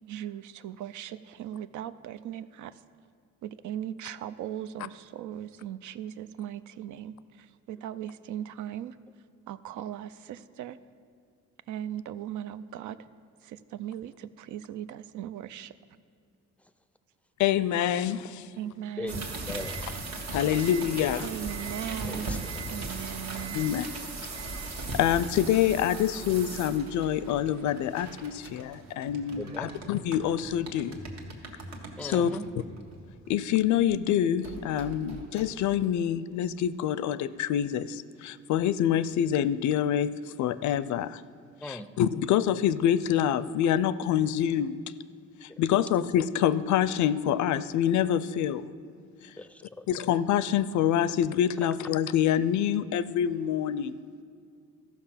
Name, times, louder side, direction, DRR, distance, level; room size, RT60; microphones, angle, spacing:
voice 1, 0.0-2.8 3.4-9.0 9.5-10.8 11.7-13.0 13.4-15.7 18.6-19.3 21.2-23.6, right 11 dB, 75° right, 14 dB, 0.5 m, -38 dB
voice 2, 17.4-18.5 20.3-21.3 23.5-23.9 24.9-31.0 32.0-32.3 33.3-41.2 41.6-44.8 45.4-48.6 49.9-54.0, left 10 dB, 70° left, 16 dB, 0.5 m, -26 dB
voice 3, 19.0-19.8 22.1-22.6 29.4-29.7 32.0-32.5 41.6-42.0 45.5-45.6 49.4-49.9, left 2 dB, 5° left, 12 dB, 0.4 m, -39 dB
sound 1, 19.1-33.9 34.4-35.9, right 3 dB, 60° right, 1.5 m, -39 dB
13.5 x 5.9 x 5.7 m, 2.3 s
cardioid pair, 90°, 30 cm